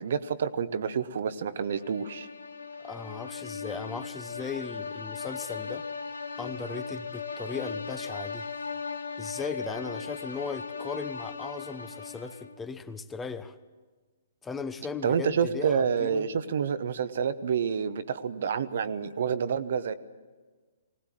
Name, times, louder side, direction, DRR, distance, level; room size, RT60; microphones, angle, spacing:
voice 1, 0.0-2.3 15.0-19.9, right 7 dB, 60° right, 12 dB, 0.9 m, -28 dB
sound 1, 1.7-12.7, left 5 dB, 75° left, 1.3 m, -38 dB
voice 2, 2.8-5.8 6.4-8.5 9.2-13.5 14.4-16.3, left 5 dB, 10° left, 12 dB, 0.9 m, -37 dB
20.5 x 18.0 x 7.6 m, 1.4 s
figure-of-eight pair, 125°, 0 cm